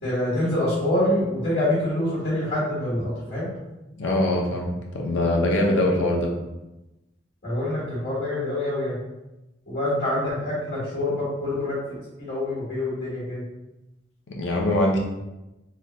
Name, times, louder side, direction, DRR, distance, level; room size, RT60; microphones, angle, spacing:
voice 1, 0.0-3.5 7.4-9.0 9.7-11.8 12.2-13.4, left 1 dB, 55° left, -10 dB, 1.4 m, -26 dB
voice 2, 4.0-6.3 14.3-15.0, left 1 dB, 85° left, 0 dB, 0.6 m, -23 dB
3.1 x 2.3 x 2.9 m, 0.98 s
head